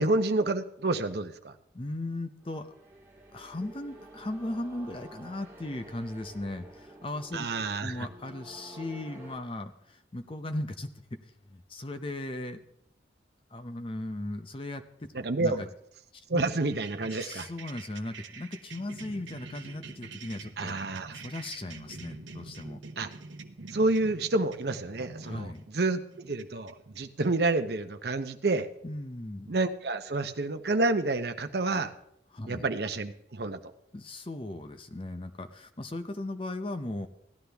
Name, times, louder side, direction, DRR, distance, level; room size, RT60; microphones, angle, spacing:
voice 1, 0.0-1.5 7.3-8.1 15.1-15.6 16.3-17.5 20.6-21.2 23.0-23.1 23.7-28.7 29.5-31.9 32.5-33.6, right 2 dB, 60° right, 8 dB, 0.8 m, -29 dB
voice 2, 1.7-2.7 3.3-11.2 11.5-12.6 13.5-15.1 15.4-15.7 16.1-16.5 17.0-20.8 21.1-22.8 25.2-25.6 28.8-29.5 32.3-32.7 33.9-37.1, left 1 dB, 30° left, 9 dB, 0.6 m, -37 dB
sound 1, 2.4-9.4, right 1 dB, 10° right, 2.7 m, -50 dB
sound 2, 16.7-27.3, right 4 dB, 85° right, 0.9 m, -46 dB
17.0 x 11.5 x 3.4 m, 0.76 s
head